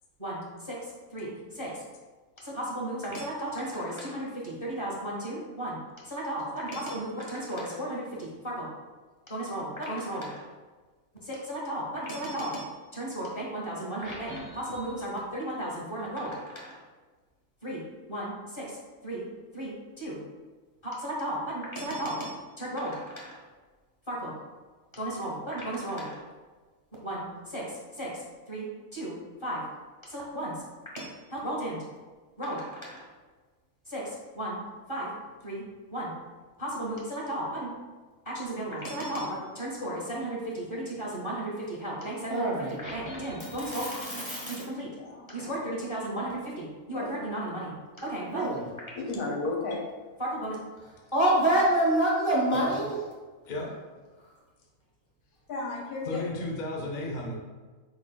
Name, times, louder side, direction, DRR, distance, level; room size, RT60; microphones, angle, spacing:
voice 1, 0.2-0.8 1.1-1.7 2.4-5.8 6.1-8.7 9.3-10.4 11.2-16.8 17.6-17.8 18.1-18.6 19.0-19.2 19.5-20.2 20.8-23.4 24.1-24.3 25.0-26.2 27.0-27.6 28.0-28.1 28.5-28.7 28.9-29.1 29.4-29.6 30.1-30.5 30.9-31.8 32.4-33.0 33.9-34.0 34.3-34.6 34.9-35.1 35.4-35.6 35.9-36.1 36.6-37.7 38.2-44.9 45.3-47.7 48.0-48.7 50.2-50.5 51.1-53.0, right 1 dB, 20° left, -5 dB, 1.1 m, -32 dB
voice 2, 45.0-45.6 46.9-47.1 49.0-49.8 55.5-56.2, left 3 dB, 70° left, -2 dB, 1.4 m, -33 dB
voice 3, 56.0-57.4, left 1 dB, 50° left, -1 dB, 0.6 m, -33 dB
4.7 x 4.0 x 2.2 m, 1.3 s
omnidirectional pair, 1.5 m